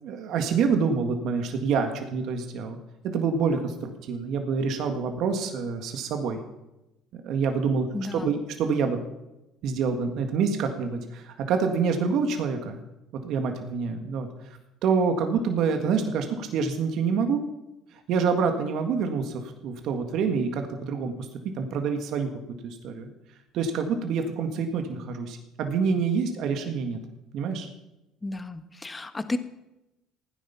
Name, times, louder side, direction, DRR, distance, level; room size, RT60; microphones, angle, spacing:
voice 1, 0.0-2.8 3.1-6.4 7.1-9.0 9.6-12.8 13.2-14.3 14.8-17.4 18.1-21.3 21.6-22.3 22.6-23.1 23.5-27.0 27.3-27.7, right 5 dB, 65° right, 5 dB, 1.9 m, -27 dB
voice 2, 7.9-8.3 28.2-29.4, left 2 dB, 20° left, 10 dB, 1.3 m, -32 dB
16.5 x 10.0 x 5.8 m, 0.95 s
supercardioid pair, 95°, 0 cm